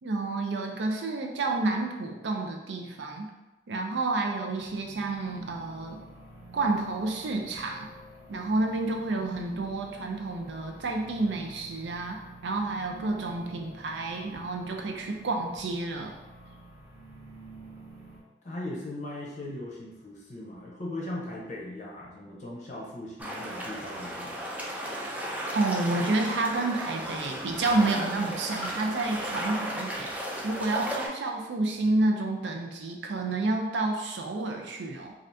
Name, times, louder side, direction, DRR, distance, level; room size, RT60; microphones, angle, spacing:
voice 1, 0.0-3.3 3.7-6.0 6.5-7.9 8.3-16.2 25.0-35.1, right 2 dB, 85° right, 2 dB, 0.5 m, -30 dB
sound 1, 4.6-18.2, right 2 dB, 60° right, 0.9 m, -49 dB
voice 2, 18.4-24.4, left 1 dB, 40° left, -3 dB, 0.6 m, -39 dB
sound 2, 23.2-31.1, equal, 10° right, 0.3 m, -35 dB
2.6 x 2.4 x 3.3 m, 1.1 s
head